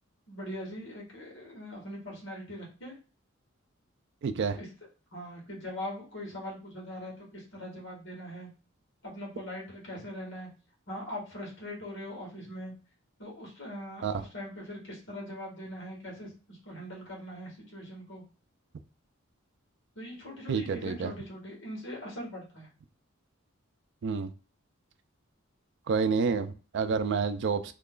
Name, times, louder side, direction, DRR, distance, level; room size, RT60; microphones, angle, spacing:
voice 1, 0.3-3.0 4.5-4.7 5.1-8.5 9.0-10.5 10.9-12.7 13.2-18.2 20.0-22.7, equal, 65° left, 1.7 m, -41 dB
voice 2, 4.2-4.6 14.0-14.1 20.5-21.1 24.0-24.3 25.9-27.7, right 5 dB, 60° right, 0.4 m, -28 dB
3.1 x 2.3 x 3.7 m
head